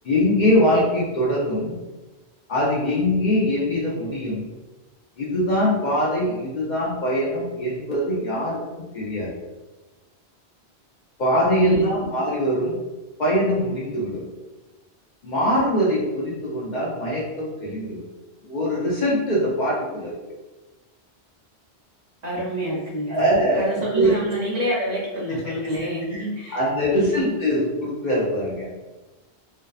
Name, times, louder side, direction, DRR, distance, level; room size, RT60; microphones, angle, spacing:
voice 1, 0.0-1.8 2.5-4.5 5.2-8.6 8.9-9.3 11.2-12.8 13.2-14.2 15.2-18.1 18.4-20.2 23.1-24.1 26.1-26.2 26.5-28.7, equal, 55° left, -6 dB, 0.6 m, -22 dB
voice 2, 11.6-12.1 22.2-23.3 23.6-26.6 26.9-27.3, equal, 50° right, -7 dB, 0.6 m, -28 dB
2.5 x 2.2 x 2.3 m, 1.1 s
omnidirectional pair, 1.1 m